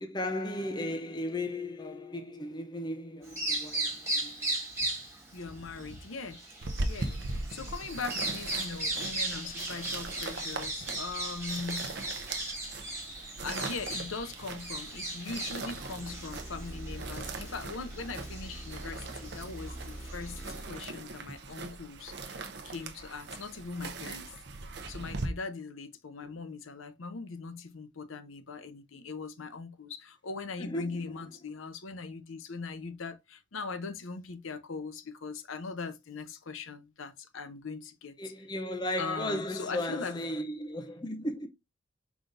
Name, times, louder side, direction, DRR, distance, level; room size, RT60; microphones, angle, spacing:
voice 1, 0.0-4.4 30.6-31.3 38.2-41.5, left 1 dB, 20° left, 0.5 m, -35 dB
Bird vocalization bird call bird song, 3.2-20.6, right 2 dB, 10° right, 2.1 m, -38 dB
voice 2, 5.3-6.4 6.9-12.0 13.4-24.3 24.9-38.3 39.0-40.2, left 4 dB, 80° left, 0.7 m, -40 dB
sound 1, 6.6-25.3, right 3 dB, 55° right, 0.7 m, -40 dB
sound 2, 15.5-20.8, right 1 dB, 60° left, 2.9 m, -44 dB
4.9 x 3.9 x 2.5 m
head